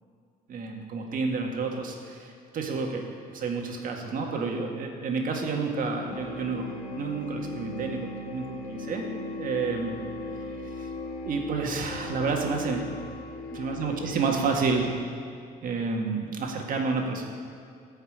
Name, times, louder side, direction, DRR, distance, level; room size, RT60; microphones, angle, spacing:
voice 1, 0.5-3.1 3.3-6.7 7.0-9.1 9.4-10.0 10.8-10.9 11.2-12.9 13.5-15.0 15.6-17.2, right 4 dB, 55° right, 2 dB, 1.8 m, -30 dB
sound 1, 6.1-14.9, left 2 dB, 75° left, 1.7 m, -38 dB
13.5 x 5.6 x 8.7 m, 2.3 s
cardioid pair, 110°, 17 cm